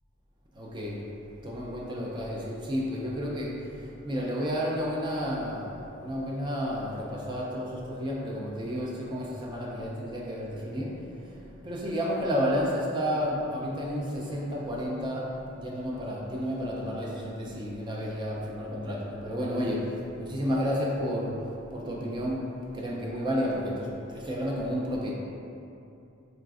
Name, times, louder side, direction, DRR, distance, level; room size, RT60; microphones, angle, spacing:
voice 1, 0.5-25.1, equal, 20° right, -3 dB, 0.3 m, -31 dB
4.0 x 2.4 x 2.3 m, 2.7 s
head